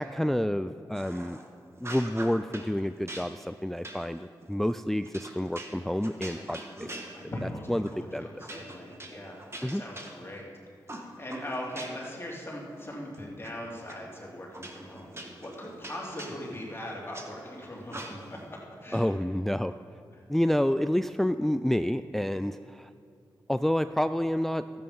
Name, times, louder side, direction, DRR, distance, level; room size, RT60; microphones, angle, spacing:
voice 1, 0.0-1.4 1.8-7.1 7.7-7.8 8.1-8.3 9.6-9.8 18.9-19.7 20.3-22.9 23.5-24.6, equal, 5° left, 11 dB, 0.3 m, -29 dB
sound 1, 0.9-1.5 1.8-2.7 3.1-7.5 7.8-8.0 8.4-10.5 10.9-12.2 12.5-13.5 13.9-14.0 14.5-17.3 17.9-18.4, right 1 dB, 30° right, 1.6 m, -43 dB
voice 2, 6.3-6.8 7.1-10.5 10.9-19.1, left 1 dB, 30° left, -3 dB, 3.0 m, -40 dB
12.5 x 9.0 x 5.3 m, 2.3 s
cardioid pair, 45°, 8 cm